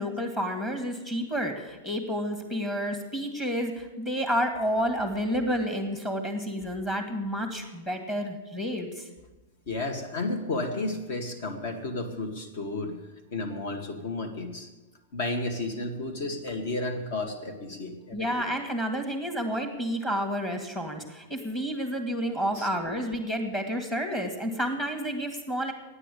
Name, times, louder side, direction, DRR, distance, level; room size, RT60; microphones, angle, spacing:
voice 1, 0.0-9.1 18.1-25.7, equal, 10° left, 4 dB, 1.9 m, -30 dB
voice 2, 9.7-13.0 13.3-14.7 15.1-18.3 22.5-22.7, left 2 dB, 55° left, 4 dB, 2.0 m, -32 dB
14.5 x 9.9 x 8.4 m, 1.1 s
supercardioid pair, 170°, 0 cm